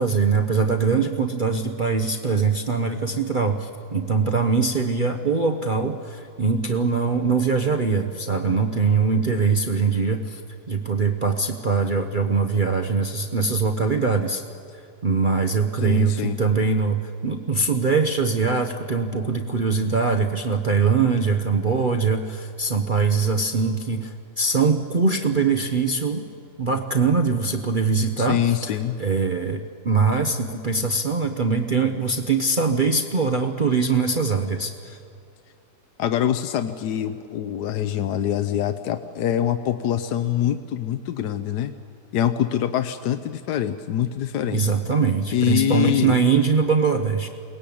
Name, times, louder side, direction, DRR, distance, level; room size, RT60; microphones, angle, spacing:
voice 1, 0.0-10.4 10.7-14.4 15.0-26.2 26.6-35.0 44.5-47.3, right 4 dB, 40° right, 5 dB, 0.8 m, -22 dB
voice 2, 15.8-16.4 28.2-29.0 36.0-41.7 42.1-44.6 45.3-46.2, left 10 dB, 80° left, 9 dB, 1.3 m, -24 dB
22.0 x 18.5 x 8.6 m, 2.5 s
omnidirectional pair, 1.8 m